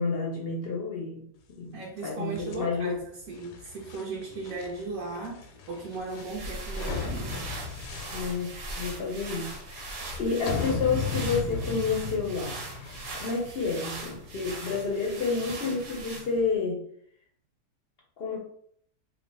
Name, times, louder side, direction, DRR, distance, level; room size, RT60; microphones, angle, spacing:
voice 1, 0.0-1.8 2.0-3.0 8.1-9.8 10.2-12.6 13.2-16.8 18.2-18.4, left 4 dB, 60° left, -1 dB, 0.6 m, -30 dB
voice 2, 1.7-7.5, right 3 dB, 65° right, -4 dB, 1.2 m, -37 dB
sound 1, 2.3-15.6, left 4 dB, 85° left, 1.1 m, -37 dB
sound 2, 5.9-16.6, right 2 dB, 90° right, 1.5 m, -40 dB
3.0 x 2.2 x 4.0 m, 0.64 s
omnidirectional pair, 1.6 m